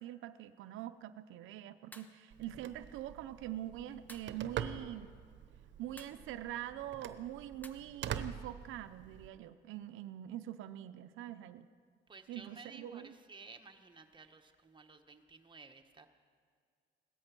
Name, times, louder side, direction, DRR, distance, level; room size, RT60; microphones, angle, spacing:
voice 1, 0.0-5.1 5.8-11.7 12.3-13.2, right 12 dB, 90° right, 11 dB, 0.6 m, -44 dB
sound 1, 1.9-2.2 4.1-4.4 6.0-6.3 7.6-7.7, left 1 dB, 10° left, 1.2 m, -53 dB
Telephone, 2.3-9.3, right 8 dB, 65° right, 0.9 m, -45 dB
voice 2, 12.1-16.1, right 4 dB, 25° right, 5 dB, 1.3 m, -55 dB
17.0 x 13.0 x 6.0 m, 2.1 s
cardioid pair, 90°, 20 cm